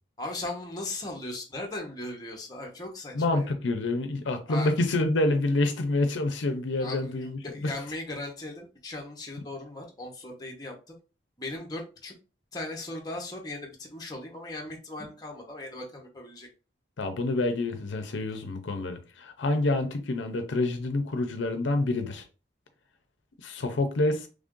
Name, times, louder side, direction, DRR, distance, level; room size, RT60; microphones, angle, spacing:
voice 1, 0.2-3.5 4.5-4.7 6.8-11.0 11.4-12.1 12.5-16.5, left 2 dB, 20° left, 0.9 m, -38 dB
voice 2, 3.1-7.7 17.0-22.2 23.4-24.3, left 2 dB, 85° left, 0.6 m, -27 dB
3.4 x 2.6 x 3.7 m
head